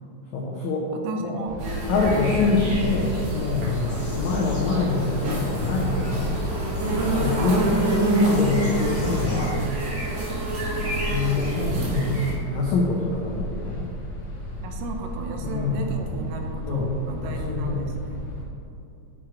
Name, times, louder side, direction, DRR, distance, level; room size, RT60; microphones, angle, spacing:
voice 1, 0.3-0.9 1.2-1.4 1.9-6.4 7.0-9.6 11.1-13.9 15.4-15.8 16.7-16.9 17.2-17.8, left 3 dB, 80° left, -2 dB, 1.6 m, -25 dB
voice 2, 0.9-1.6 7.4-7.6 14.6-18.2, right 3 dB, 80° right, 4 dB, 2.3 m, -34 dB
sound 1, 1.4-18.4, equal, 65° left, 1.3 m, -34 dB
sound 2, 1.6-12.3, right 1 dB, 55° right, 2.5 m, -27 dB
sound 3, 3.9-9.5, left 1 dB, 45° left, 1.9 m, -37 dB
6.4 x 6.1 x 4.5 m, 2.8 s
omnidirectional pair, 4.2 m